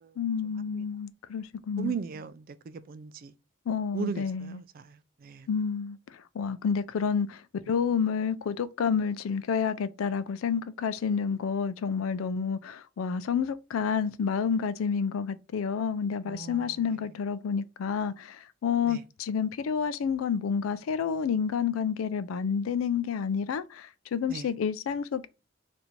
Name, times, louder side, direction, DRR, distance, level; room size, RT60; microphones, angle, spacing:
voice 1, 0.2-2.0 3.7-4.6 5.5-7.4 7.7-25.3, left 6 dB, 85° left, 0.4 m, -29 dB
voice 2, 1.8-3.3 3.9-5.5 16.3-17.0 18.9-19.0 24.3-24.5, right 6 dB, 45° right, 0.3 m, -38 dB
2.8 x 2.6 x 4.3 m
head